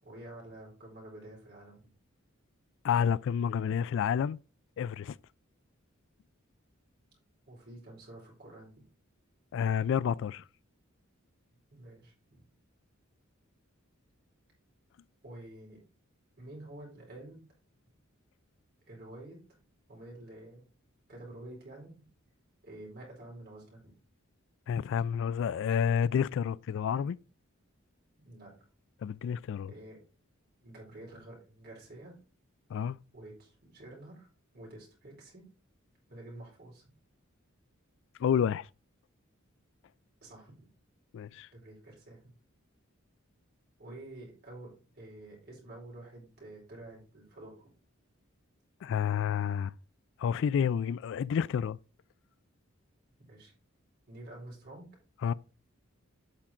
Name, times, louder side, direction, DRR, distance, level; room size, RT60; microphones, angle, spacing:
voice 1, 0.0-1.9 7.5-8.7 11.7-12.4 15.2-15.8 16.4-17.4 18.9-19.4 19.9-20.7 21.1-21.9 22.6-23.9 28.2-28.5 29.7-30.0 30.6-32.2 33.1-34.3 34.5-35.5 36.1-36.8 40.2-40.7 41.5-42.2 43.8-47.5 53.3-53.5 54.1-54.9, right 1 dB, 50° right, 4.9 m, -49 dB
voice 2, 2.8-4.4 4.8-5.2 9.5-10.4 24.7-27.2 29.0-29.7 32.7-33.0 38.2-38.7 41.1-41.5 48.8-49.7 50.2-51.8 55.2-55.3, left 8 dB, 65° left, 0.3 m, -29 dB
8.7 x 6.0 x 3.8 m
head